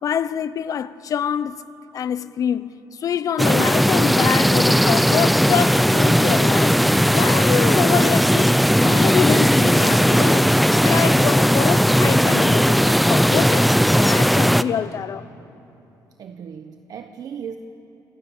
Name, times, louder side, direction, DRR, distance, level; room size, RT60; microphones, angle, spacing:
voice 1, 0.0-1.6 1.9-6.8 7.1-10.6 10.8-13.7 14.0-15.2, left 8 dB, 50° left, 0.8 m, -25 dB
sound 1, 3.4-14.6, equal, ahead, 0.5 m, -17 dB
voice 2, 16.2-17.6, right 7 dB, 55° right, 1.1 m, -36 dB
27.5 x 26.0 x 7.3 m
cardioid pair, 140°, 7 cm